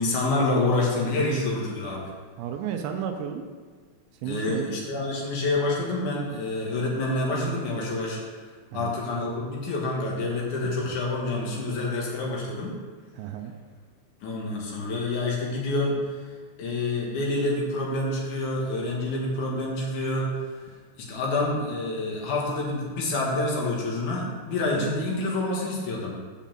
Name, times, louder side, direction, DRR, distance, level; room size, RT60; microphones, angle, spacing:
voice 1, 0.0-2.1 4.2-8.5 8.7-12.7 14.2-16.3 16.6-20.7 21.0-26.2, left 2 dB, 60° left, -3 dB, 2.1 m, -27 dB
voice 2, 2.4-3.4 4.2-4.8 8.7-9.0 10.8-10.9 13.2-13.5 24.8-24.9, right 8 dB, 80° right, 5 dB, 2.7 m, -33 dB
8.3 x 5.4 x 7.4 m, 1.5 s
omnidirectional pair, 5.5 m